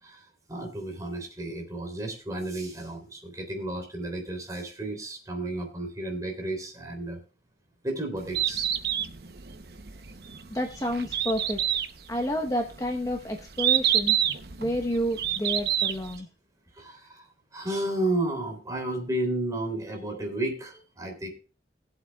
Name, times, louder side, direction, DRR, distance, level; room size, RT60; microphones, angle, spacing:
voice 1, 0.0-7.2 7.8-8.7 16.7-21.3, right 1 dB, 20° right, 3 dB, 3.3 m, -32 dB
Bird, 8.2-16.2, right 10 dB, 60° right, 0.9 m, -28 dB
voice 2, 10.5-11.6 12.1-14.2 14.6-16.3, equal, 20° left, 2 dB, 1.1 m, -29 dB
20.5 x 7.9 x 2.3 m, 0.34 s
head